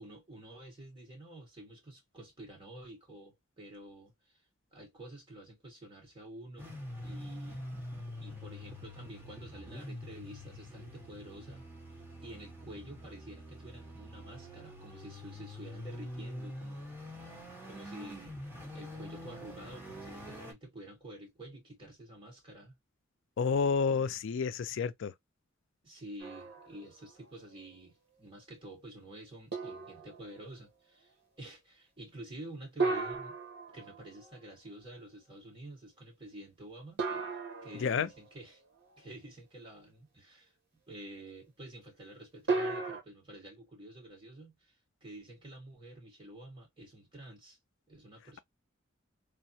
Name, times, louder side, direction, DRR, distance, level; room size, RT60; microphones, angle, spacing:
voice 1, 0.0-4.4 4.7-7.7 8.2-11.7 12.2-16.9 17.3-18.4 18.7-22.8 23.9-24.1 25.8-33.4 33.7-37.0 37.6-38.6 39.0-40.5 40.9-44.7 45.0-47.6 47.9-48.4, right 1 dB, 25° right, 1.8 m, -49 dB
sound 1, 6.6-20.5, left 1 dB, 10° right, 1.3 m, -45 dB
voice 2, 23.4-25.1 37.8-38.1, left 5 dB, 65° left, 0.4 m, -30 dB
sound 2, 26.2-27.1 27.6-27.7 29.5-30.4 32.8-34.4 37.0-38.3 42.5-43.0, right 3 dB, 55° right, 1.2 m, -35 dB
3.4 x 2.2 x 2.7 m
head